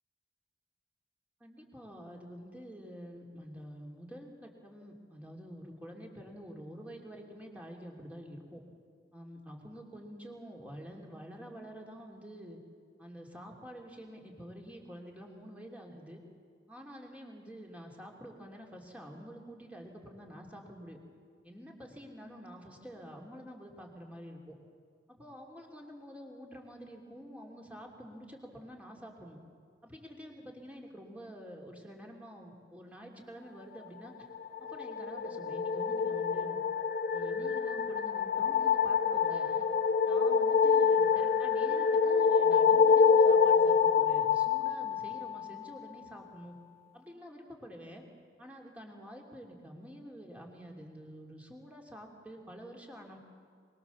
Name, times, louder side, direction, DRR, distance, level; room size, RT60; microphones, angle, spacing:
voice 1, 1.4-8.6 9.1-12.6 13.0-16.2 16.7-21.0 21.4-24.5 25.1-29.4 29.8-34.3 34.6-36.6 37.1-39.6 40.0-46.5 46.9-48.0 48.4-53.2, equal, 10° right, 0 dB, 3.1 m, -48 dB
sound 1, 34.3-45.7, left 6 dB, 50° left, 0.8 m, -26 dB
23.5 x 22.0 x 7.1 m, 2.1 s
head